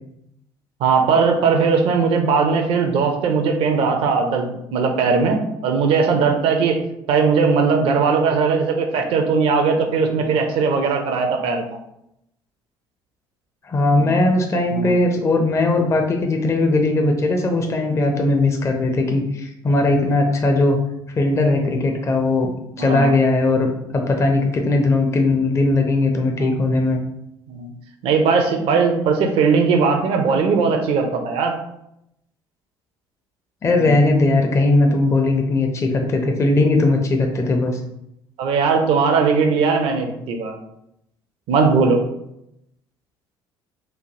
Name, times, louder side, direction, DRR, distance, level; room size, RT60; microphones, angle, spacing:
voice 1, 0.8-6.8 7.1-11.8 14.0-14.1 14.7-14.9 22.8-23.2 26.4-26.5 27.5-27.7 28.0-31.6 33.7-34.0 38.4-40.6 41.5-42.0, right 5 dB, 50° right, 4 dB, 0.4 m, -19 dB
voice 2, 13.6-20.8 21.2-27.0 33.6-37.8, left 2 dB, 25° left, 3 dB, 0.4 m, -19 dB
3.1 x 2.1 x 2.6 m, 0.80 s
figure-of-eight pair, 55°, 12 cm